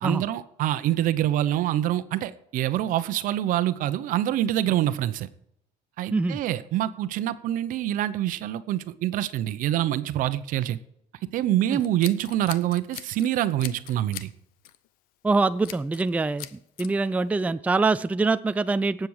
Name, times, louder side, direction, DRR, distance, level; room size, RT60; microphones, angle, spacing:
voice 1, 0.0-5.3 6.0-10.8 11.3-14.3, right 12 dB, 65° right, 13 dB, 0.9 m, -26 dB
Scissors, 11.7-13.3 13.6-14.3 14.6-14.9 15.6-16.1 16.4-16.9, left 13 dB, 75° left, 0.7 m, -40 dB
voice 2, 15.2-16.5 16.8-19.1, right 3 dB, 10° right, 13 dB, 0.4 m, -24 dB
18.0 x 7.9 x 4.8 m, 0.77 s
cardioid pair, 105°, 15 cm